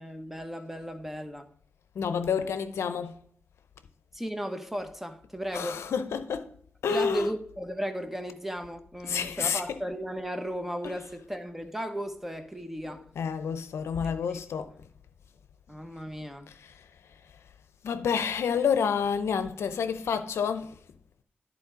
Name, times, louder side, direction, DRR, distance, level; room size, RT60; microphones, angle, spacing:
voice 1, 0.0-1.5 4.1-5.8 6.9-13.0 14.0-14.4 15.7-16.5, equal, 5° right, 1.1 m, -35 dB
voice 2, 2.0-3.2 5.5-6.5 6.8-7.3 9.0-9.8 10.8-11.0 12.8-14.7 16.6-16.7 17.8-20.7, left 7 dB, 85° left, 0.6 m, -29 dB
11.0 x 4.2 x 5.0 m
cardioid pair, 50°, 4 cm